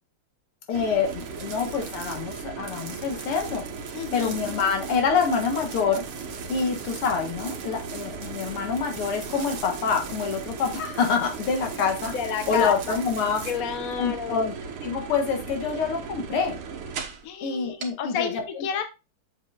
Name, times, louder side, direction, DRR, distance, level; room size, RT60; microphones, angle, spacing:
voice 1, 0.7-6.0 6.5-12.1 12.5-13.4 14.0-14.5 14.8-16.6 17.4-18.4, left 5 dB, 85° left, 3 dB, 2.4 m, -26 dB
sound 1, 0.7-17.3 17.8-17.9, right 6 dB, 90° right, 2.1 m, -37 dB
sound 2, 1.1-15.0, right 6 dB, 65° right, 2.0 m, -43 dB
voice 2, 3.9-4.3 12.1-13.0 13.4-14.5 17.2-18.8, left 8 dB, 50° left, 7 dB, 1.2 m, -30 dB
7.5 x 6.7 x 2.4 m, 0.27 s
omnidirectional pair, 2.4 m